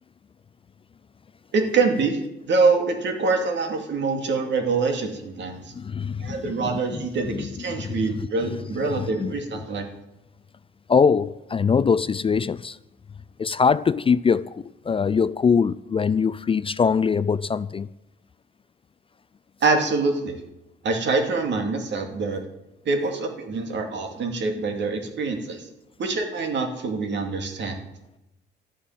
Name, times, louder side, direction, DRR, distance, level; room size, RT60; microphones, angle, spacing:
voice 1, 1.5-2.2 2.5-5.7 6.2-9.9 19.6-20.3 20.8-22.4 22.9-25.7 26.0-27.8, right 4 dB, 65° right, 2.6 m, -25 dB
voice 2, 5.7-9.3 10.9-12.8 13.4-17.9, left 6 dB, 30° left, 0.4 m, -23 dB
13.0 x 8.7 x 7.4 m
cardioid pair, 90°, 20 cm